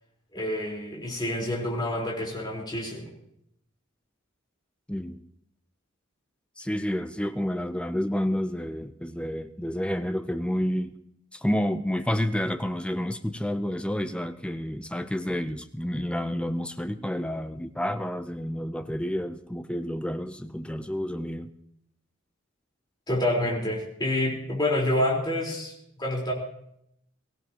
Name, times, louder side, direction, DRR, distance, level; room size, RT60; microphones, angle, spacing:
voice 1, 0.3-3.1 23.1-25.7 26.0-26.3, left 1 dB, 20° left, -3 dB, 4.1 m, -27 dB
voice 2, 4.9-5.2 6.6-10.9 11.3-21.5, equal, 5° left, 10 dB, 0.5 m, -29 dB
23.0 x 15.5 x 2.9 m, 0.75 s
head